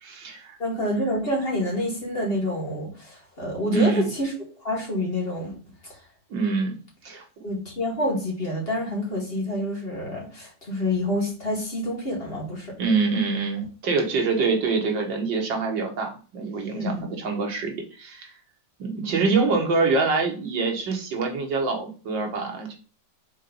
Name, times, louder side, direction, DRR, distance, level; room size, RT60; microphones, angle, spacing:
voice 1, 0.0-0.6 3.7-4.0 6.3-6.8 7.0-7.2 12.8-18.3 18.8-22.8, right 4 dB, 85° right, 2 dB, 2.1 m, -25 dB
voice 2, 0.6-4.3 4.6-5.6 7.4-12.8 16.7-17.0, left 1 dB, 30° left, -3 dB, 2.5 m, -27 dB
5.5 x 3.9 x 5.2 m, 0.38 s
omnidirectional pair, 2.0 m